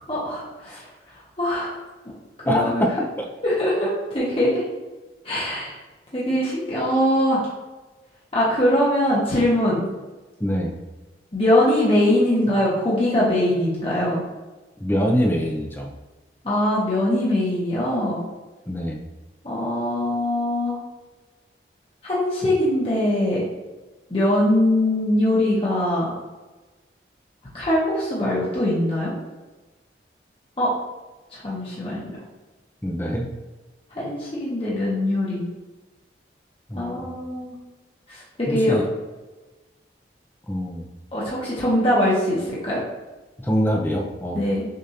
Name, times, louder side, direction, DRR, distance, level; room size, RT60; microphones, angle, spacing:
voice 1, 0.1-0.8 1.4-1.7 2.4-2.9 3.4-4.6 5.2-5.8 6.1-7.5 8.3-9.9 11.3-14.2 16.4-18.2 19.4-20.8 22.0-23.4 24.1-26.1 27.5-29.1 30.6-30.7 31.3-32.1 33.9-35.5 36.7-37.5 38.1-38.8 41.1-42.8 44.3-44.6, left 1 dB, 30° left, -7 dB, 1.0 m, -22 dB
voice 2, 2.4-2.9 3.2-3.3 10.4-10.8 14.8-15.9 18.7-19.0 32.8-33.3 36.7-37.1 38.5-38.9 40.5-40.9 43.4-44.4, equal, 10° left, 0 dB, 0.5 m, -24 dB
6.5 x 2.6 x 2.8 m, 1.2 s
head